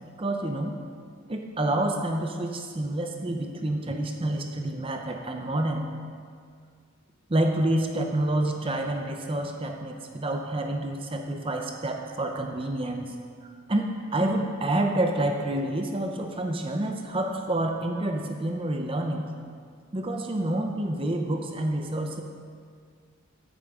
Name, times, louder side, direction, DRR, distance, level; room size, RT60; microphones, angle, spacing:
voice 1, 0.2-0.7 1.3-5.9 7.3-13.2 13.4-19.3 19.9-22.2, right 1 dB, 25° right, 3 dB, 0.6 m, -28 dB
13.5 x 8.8 x 3.7 m, 2.1 s
head